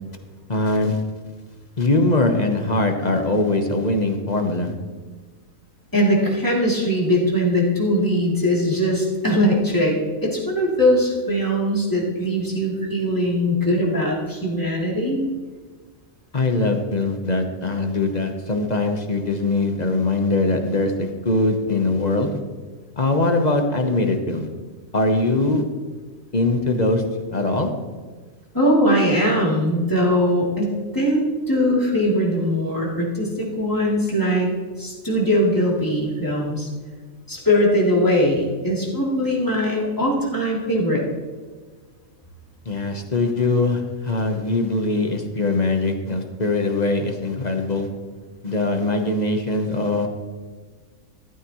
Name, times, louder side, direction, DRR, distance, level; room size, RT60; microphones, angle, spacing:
voice 1, 0.5-1.0 1.8-4.7 16.3-22.4 23.0-24.5 24.9-25.6 26.3-27.0 27.3-27.7 42.6-47.9 48.4-50.1, left 2 dB, 35° left, 5 dB, 1.1 m, -22 dB
voice 2, 5.9-15.2 28.5-34.5 34.8-36.7 37.3-41.0, equal, 15° left, -4 dB, 3.0 m, -21 dB
13.5 x 12.5 x 3.1 m, 1.4 s
omnidirectional pair, 1.5 m